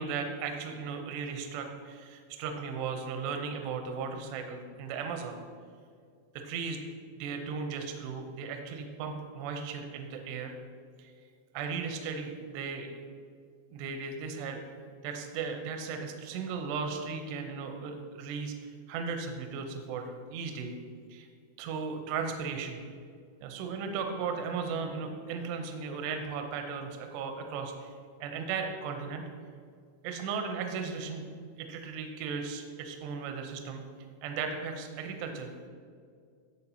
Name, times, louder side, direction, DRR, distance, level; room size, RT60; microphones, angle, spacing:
voice 1, 0.0-5.4 6.3-6.8 7.2-10.5 11.0-11.1 11.5-12.9 13.7-14.6 15.0-20.8 21.1-21.3 21.6-22.8 23.4-27.9 28.2-29.2 30.0-31.2 31.6-33.8 34.2-35.5, right 5 dB, 80° right, 4 dB, 2.6 m, -36 dB
11.0 x 7.3 x 2.8 m, 2.1 s
omnidirectional pair, 5.6 m